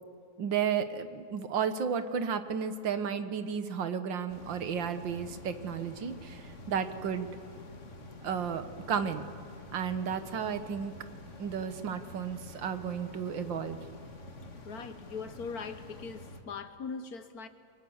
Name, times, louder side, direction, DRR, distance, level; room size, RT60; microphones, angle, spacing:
voice 1, 0.4-7.3 8.2-9.3 9.7-10.9 11.4-13.8, right 7 dB, 80° right, 10 dB, 2.0 m, -33 dB
sound 1, 4.3-16.4, left 2 dB, 40° left, 2.2 m, -48 dB
voice 2, 14.6-17.5, left 5 dB, 55° left, 10 dB, 1.6 m, -40 dB
30.0 x 24.0 x 7.2 m, 2.3 s
omnidirectional pair, 2.0 m